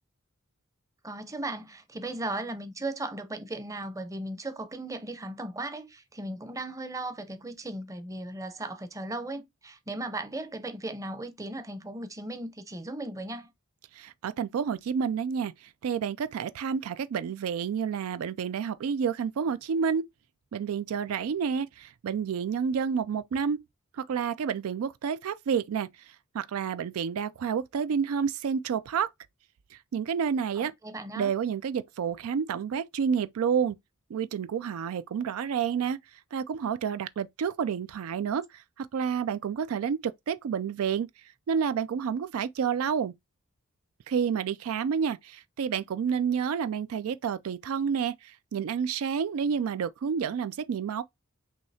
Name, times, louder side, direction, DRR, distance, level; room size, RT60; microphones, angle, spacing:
voice 1, 1.0-13.5 30.6-31.3, right 2 dB, 15° right, 0.6 m, -37 dB
voice 2, 13.9-20.0 20.5-23.6 24.0-25.9 26.3-29.1 29.7-30.7 31.2-33.8 34.1-36.0 36.3-41.1 41.5-43.1 44.1-51.0, right 7 dB, 80° right, 0.4 m, -29 dB
6.2 x 2.8 x 2.7 m
head